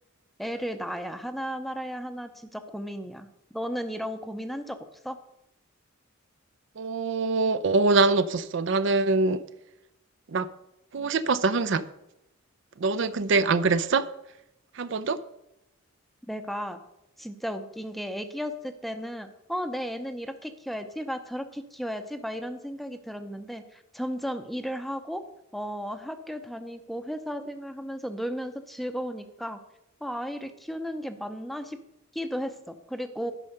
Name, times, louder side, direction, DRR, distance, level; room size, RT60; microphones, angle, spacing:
voice 1, 0.4-3.3 3.5-4.8 5.0-5.2 16.3-16.8 17.2-25.2 25.5-29.6 30.0-31.8 32.1-33.3, equal, ahead, 9 dB, 0.6 m, -34 dB
voice 2, 6.8-9.4 10.3-10.5 10.9-11.9 12.8-14.1 14.7-15.2, right 3 dB, 60° right, 14 dB, 0.5 m, -24 dB
10.5 x 5.6 x 6.5 m, 0.86 s
head